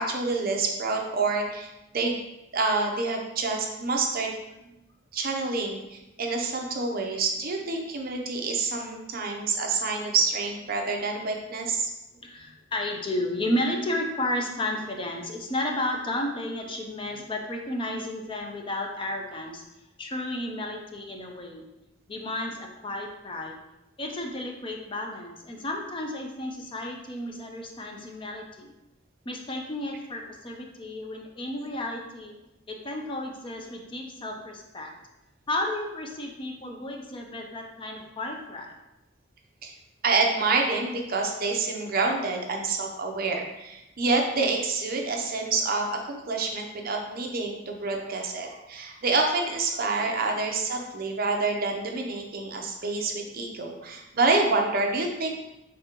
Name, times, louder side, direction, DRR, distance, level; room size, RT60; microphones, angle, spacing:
voice 1, 0.0-2.2 2.5-4.3 5.1-11.9 39.6-39.7 40.0-55.3, right 3 dB, 45° right, 2 dB, 0.6 m, -27 dB
voice 2, 12.1-19.6 20.0-21.6 22.1-23.6 24.0-28.7 29.3-32.3 32.7-34.9 35.5-38.7 53.6-53.9, left 1 dB, 25° left, 2 dB, 0.5 m, -32 dB
5.2 x 3.3 x 2.9 m, 0.95 s
head